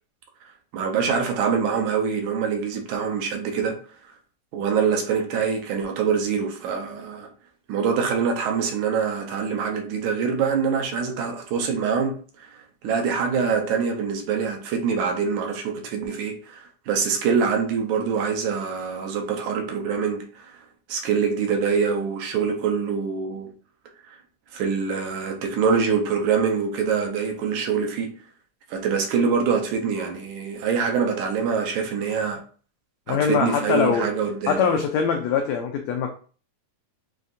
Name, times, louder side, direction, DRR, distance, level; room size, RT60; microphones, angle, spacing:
voice 1, 0.7-3.8 4.5-7.3 7.7-20.6 20.9-23.5 24.1-24.2 24.5-28.1 28.7-32.4 33.1-34.8, right 6 dB, 75° right, 2.0 m, -25 dB
voice 2, 33.1-34.1 34.5-36.1, left 6 dB, 85° left, 1.5 m, -22 dB
7.2 x 2.5 x 2.5 m
omnidirectional pair, 3.7 m